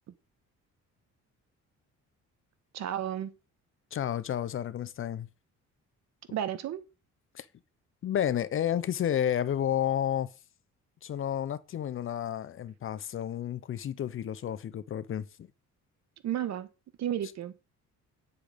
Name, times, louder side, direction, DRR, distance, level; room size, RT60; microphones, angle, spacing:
voice 1, 2.7-3.3 6.3-6.8 16.2-16.7 17.0-17.5, right 10 dB, 65° right, 1.5 m, -32 dB
voice 2, 3.9-5.3 6.3-6.4 7.3-7.5 8.0-10.3 11.0-15.5, left 10 dB, 45° left, 0.7 m, -31 dB
10.0 x 6.7 x 5.1 m
cardioid pair, 140°, 30 cm